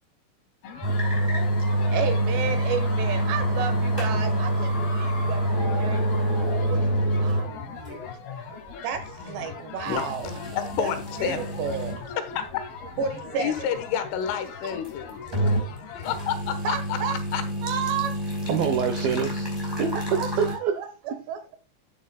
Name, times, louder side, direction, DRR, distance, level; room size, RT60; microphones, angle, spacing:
sound 1, 0.6-16.4, left 5 dB, 60° left, 3.5 m, -40 dB
sound 2, 0.8-7.5 7.9-8.0 8.7-8.8 9.9-12.0 12.5-12.6 14.7-15.7 16.0-20.5, right 1 dB, 5° right, 4.9 m, -26 dB
voice 1, 1.9-6.2 6.6-8.1 8.8-10.4 10.8-12.1 13.0-13.7 16.6-17.2 17.6-18.2 19.9-21.6, right 7 dB, 70° right, 3.2 m, -32 dB
voice 2, 10.6-11.5 12.1-12.6 13.4-16.8 17.3-17.4, left 9 dB, 80° left, 3.7 m, -30 dB
voice 3, 18.5-19.5 19.8-20.8, right 7 dB, 85° right, 2.1 m, -26 dB
13.5 x 9.6 x 2.2 m
omnidirectional pair, 5.6 m